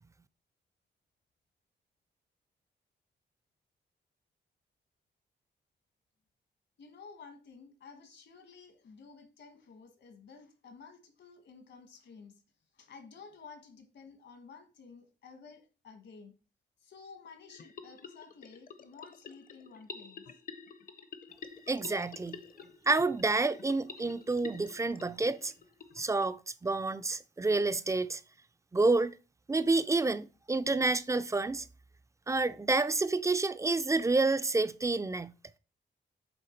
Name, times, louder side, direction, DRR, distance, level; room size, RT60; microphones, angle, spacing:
voice 1, 6.8-12.4 12.7-16.3 16.8-20.3, left 5 dB, 70° left, 1.5 m, -53 dB
sound 1, 17.5-26.2, left 5 dB, 50° left, 0.7 m, -49 dB
voice 2, 21.7-22.4 22.9-25.5 26.0-28.2 28.7-29.1 29.5-31.7 32.3-35.3, right 3 dB, 15° right, 0.3 m, -29 dB
8.0 x 3.4 x 4.4 m
wide cardioid pair, 130°, 19 cm